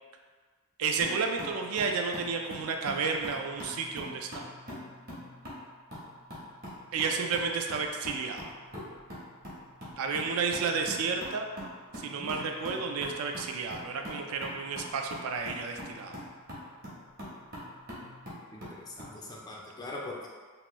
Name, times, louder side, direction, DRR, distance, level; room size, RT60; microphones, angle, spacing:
voice 1, 0.8-4.4 6.9-8.5 10.0-11.5 11.9-16.2, right 5 dB, 70° right, 3 dB, 0.3 m, -31 dB
sound 1, 1.0-19.2, equal, 45° right, 0.9 m, -44 dB
voice 2, 18.5-20.3, left 2 dB, 15° left, -2 dB, 0.3 m, -42 dB
2.9 x 2.2 x 2.9 m, 1.5 s
head